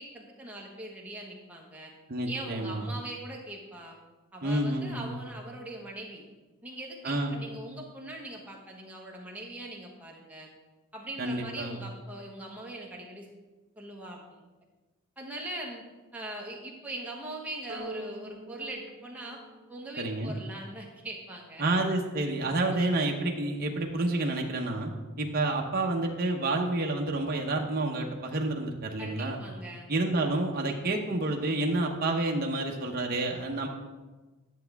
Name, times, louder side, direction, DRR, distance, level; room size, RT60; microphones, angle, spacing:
voice 1, 0.0-1.9 2.3-4.0 4.3-6.2 6.6-10.5 10.9-13.3 13.8-14.4 15.2-15.8 16.1-19.4 19.7-21.8 22.7-22.8 29.0-29.9, right 1 dB, 5° right, -2 dB, 1.3 m, -41 dB
voice 2, 2.1-2.9 4.4-5.1 7.0-7.4 11.2-11.8 20.0-20.3 21.6-24.9 25.2-29.4 29.9-33.7, right 2 dB, 45° right, 1 dB, 0.8 m, -29 dB
sound 1, 17.7-20.3, equal, 65° right, 1.6 m, -44 dB
10.5 x 7.0 x 3.4 m, 1.2 s
head